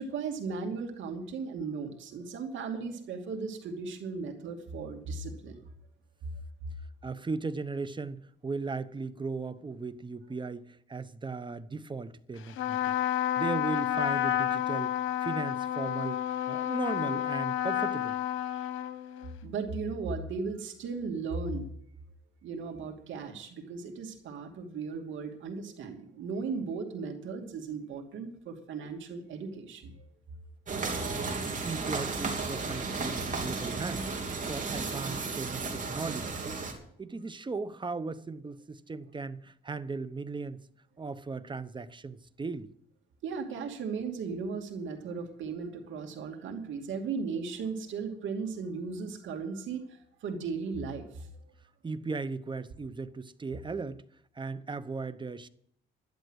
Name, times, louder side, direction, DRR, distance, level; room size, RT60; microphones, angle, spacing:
voice 1, 0.0-5.6 19.4-21.7 22.4-29.9 43.2-51.3, right 5 dB, 75° right, 2.7 m, -36 dB
voice 2, 7.0-12.9 13.4-18.2 31.1-34.1 34.5-36.6 37.0-40.6 41.0-42.7 51.8-54.0 54.3-55.5, right 4 dB, 25° right, 0.9 m, -37 dB
Trumpet, 12.5-19.4, left 11 dB, 80° left, 1.2 m, -30 dB
sound 1, 30.7-36.7, right 4 dB, 40° right, 3.4 m, -34 dB
12.0 x 11.0 x 6.4 m
cardioid pair, 90°, 20 cm